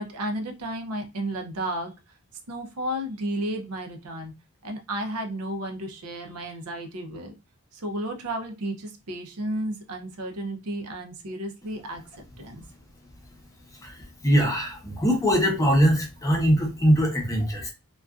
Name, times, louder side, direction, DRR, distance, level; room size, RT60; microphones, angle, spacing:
voice 1, 0.0-1.9 2.5-4.3 4.6-7.3 7.7-12.0 12.4-12.6, right 1 dB, 80° right, 4 dB, 0.6 m, -32 dB
voice 2, 13.7-17.7, equal, 15° left, 1 dB, 0.7 m, -22 dB
2.5 x 2.2 x 2.3 m, 0.27 s
head